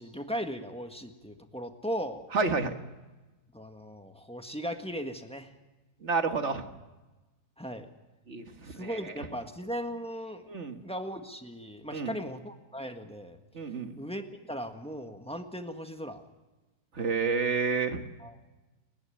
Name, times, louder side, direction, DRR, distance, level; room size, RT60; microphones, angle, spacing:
voice 1, 0.0-2.3 3.5-5.5 7.6-7.9 8.7-10.5 10.8-13.4 14.0-16.2 18.2-18.4, equal, 5° left, 5 dB, 1.4 m, -37 dB
voice 2, 2.3-2.7 6.0-6.7 8.3-9.0 10.5-10.8 11.9-12.2 13.5-14.0 17.0-18.1, right 4 dB, 45° right, 7 dB, 1.8 m, -29 dB
30.0 x 11.0 x 9.2 m, 1.1 s
omnidirectional pair, 1.7 m